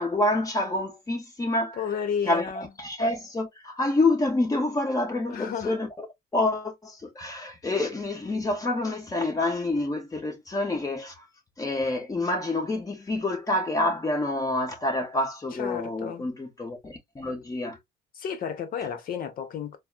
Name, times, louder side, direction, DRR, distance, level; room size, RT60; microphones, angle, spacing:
voice 1, 0.0-1.8 2.2-6.1 6.3-11.3 11.6-17.8, left 2 dB, 20° left, 1.3 m, -27 dB
voice 2, 1.7-2.7 5.3-5.7 15.5-16.3 18.1-19.8, left 7 dB, 60° left, 1.0 m, -32 dB
4.1 x 2.1 x 2.3 m
cardioid pair, 110°, 17 cm